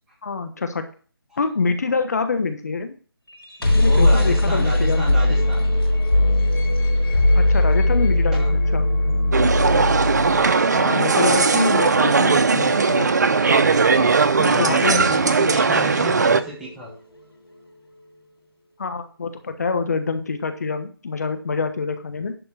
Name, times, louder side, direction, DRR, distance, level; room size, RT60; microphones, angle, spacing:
voice 1, 0.2-0.9 1.4-2.9 3.7-5.2 7.3-8.8 10.7-13.2 14.4-15.1 18.8-22.4, left 4 dB, 40° left, 8 dB, 1.1 m, -25 dB
sound 1, 3.3-17.2, left 1 dB, 80° left, 4.5 m, -21 dB
voice 2, 3.6-5.7 8.3-8.5 13.4-14.1 14.4-16.9, equal, 5° right, -3 dB, 1.1 m, -32 dB
sound 2, 9.3-16.4, right 4 dB, 45° right, 0.7 m, -18 dB
11.0 x 3.8 x 7.1 m, 0.41 s
figure-of-eight pair, 165°, 13 cm